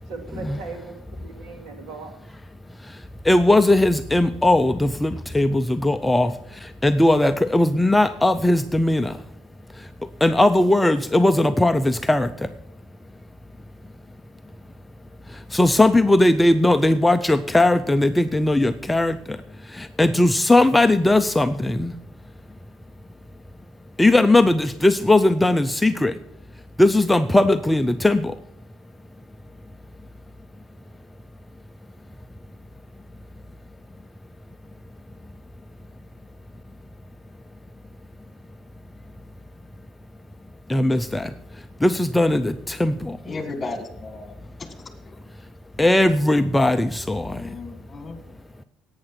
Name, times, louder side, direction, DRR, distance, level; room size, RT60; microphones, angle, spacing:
voice 1, 0.1-2.2, right 4 dB, 75° right, 5 dB, 2.4 m, -38 dB
voice 2, 3.3-6.3 6.8-9.1 10.2-12.3 15.5-19.4 19.7-21.9 24.0-26.1 26.8-28.3 40.7-41.3 41.8-43.2 45.8-47.4, left 1 dB, 5° left, 9 dB, 0.5 m, -18 dB
voice 3, 43.3-44.3 47.2-48.2, left 3 dB, 25° left, 7 dB, 1.8 m, -34 dB
11.5 x 8.9 x 5.9 m, 0.74 s
cardioid pair, 125°, 0 cm